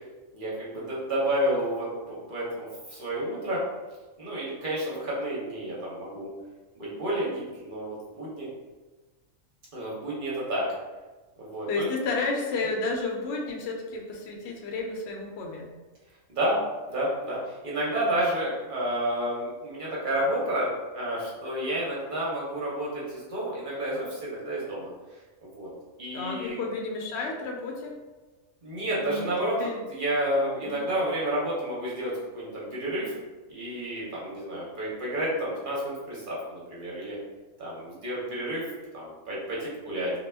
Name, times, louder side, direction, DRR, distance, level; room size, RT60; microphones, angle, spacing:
voice 1, 0.3-3.6 4.2-6.3 6.8-8.5 9.7-10.7 11.4-11.9 16.3-16.6 16.9-24.9 25.4-25.7 26.0-26.5 28.6-29.6 29.9-33.1 33.5-37.2 37.6-38.6 38.9-40.1, right 1 dB, 50° right, -6 dB, 0.6 m, -30 dB
voice 2, 11.7-15.7 26.1-28.0 29.0-29.3 29.6-29.8 30.6-30.9, left 3 dB, 65° left, 0 dB, 0.7 m, -31 dB
2.2 x 2.1 x 3.2 m, 1.2 s
omnidirectional pair, 1.4 m